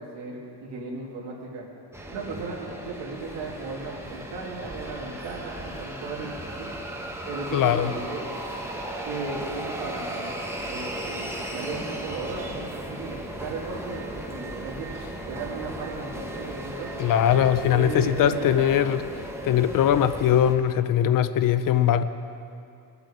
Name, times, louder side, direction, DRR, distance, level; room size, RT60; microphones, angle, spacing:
voice 1, 0.0-1.6 2.1-6.7 7.3-8.2 9.1-14.9 15.2-17.2 17.7-18.8, right 3 dB, 90° right, -4 dB, 2.2 m, -36 dB
sound 1, 1.9-20.5, right 1 dB, 5° right, 1.0 m, -36 dB
voice 2, 7.5-7.9 17.0-19.0 19.4-22.0, left 10 dB, 55° left, 11 dB, 0.6 m, -21 dB
20.5 x 8.2 x 4.9 m, 2.5 s
cardioid pair, 155°, 41 cm